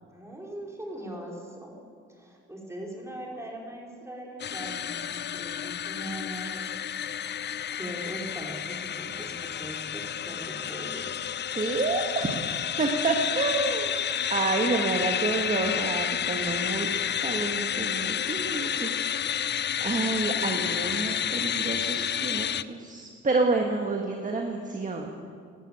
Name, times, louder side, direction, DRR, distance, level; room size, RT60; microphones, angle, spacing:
voice 1, 0.1-1.8 2.1-6.5 6.8-6.9 7.3-11.1, right 1 dB, 10° right, -2 dB, 4.3 m, -40 dB
sound 1, 4.4-22.6, left 9 dB, 35° left, 0.4 m, -30 dB
voice 2, 11.5-12.3 12.8-13.9 14.3-25.1, right 3 dB, 25° right, 2 dB, 1.6 m, -29 dB
13.5 x 11.0 x 8.9 m, 2.2 s
cardioid pair, 90°, 30 cm